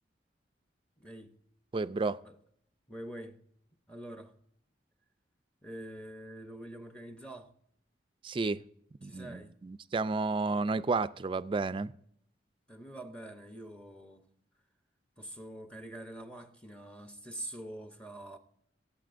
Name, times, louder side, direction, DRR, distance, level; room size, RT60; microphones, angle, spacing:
voice 1, 1.0-1.3 2.2-2.3 2.9-3.4 3.9-4.3 5.6-7.5 9.0-9.6 12.7-14.3 15.2-18.4, right 1 dB, 5° left, 0.7 m, -45 dB
voice 2, 1.7-2.2 8.2-8.6 9.0-11.9, right 3 dB, 30° right, 0.3 m, -31 dB
22.5 x 8.8 x 2.5 m
head